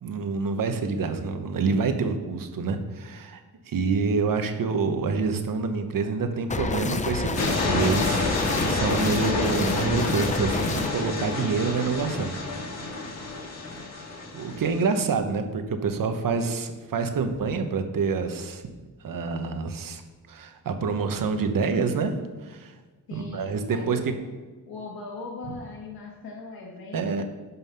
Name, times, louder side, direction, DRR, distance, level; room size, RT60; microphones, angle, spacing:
voice 1, 0.0-3.4 3.7-12.3 12.8-13.2 14.3-18.6 19.0-20.0 20.3-22.1 22.4-22.8 23.1-24.0 26.9-27.2, right 4 dB, 65° right, 7 dB, 1.1 m, -27 dB
sound 1, 6.5-10.9, left 3 dB, 20° left, 0.5 m, -29 dB
sound 2, 7.4-15.0, left 3 dB, 45° left, 1.7 m, -29 dB
voice 2, 23.1-24.3 24.7-27.2, left 3 dB, 80° left, -2 dB, 1.6 m, -39 dB
11.0 x 5.6 x 5.6 m, 1.3 s
wide cardioid pair, 170°, 36 cm